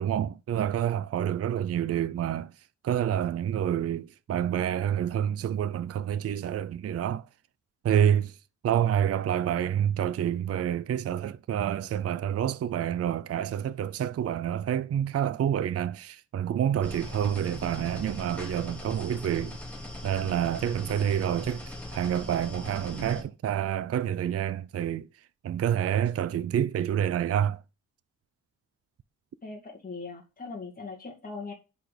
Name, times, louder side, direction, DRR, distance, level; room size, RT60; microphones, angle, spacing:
voice 1, 0.0-2.5 2.8-7.3 7.8-8.4 8.6-19.6 20.0-25.1 25.4-27.6, right 10 dB, 50° right, 0.5 m, -28 dB
sound 1, 16.8-23.2, left 1 dB, 5° left, 2.3 m, -40 dB
voice 2, 29.4-31.5, left 4 dB, 25° left, 2.2 m, -40 dB
10.0 x 4.3 x 5.0 m
wide cardioid pair, 145°, 32 cm